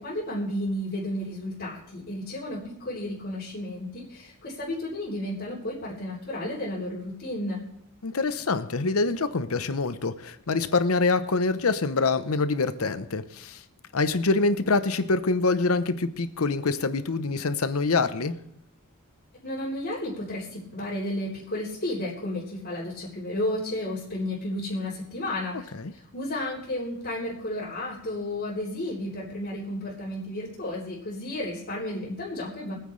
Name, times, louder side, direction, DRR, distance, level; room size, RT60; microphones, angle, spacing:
voice 1, 0.0-7.6 19.4-32.8, left 1 dB, 55° left, -10 dB, 3.5 m, -32 dB
voice 2, 8.0-13.6 13.9-18.4 25.7-25.9, left 3 dB, 85° left, 12 dB, 0.9 m, -25 dB
24.5 x 9.2 x 3.3 m, 0.73 s
head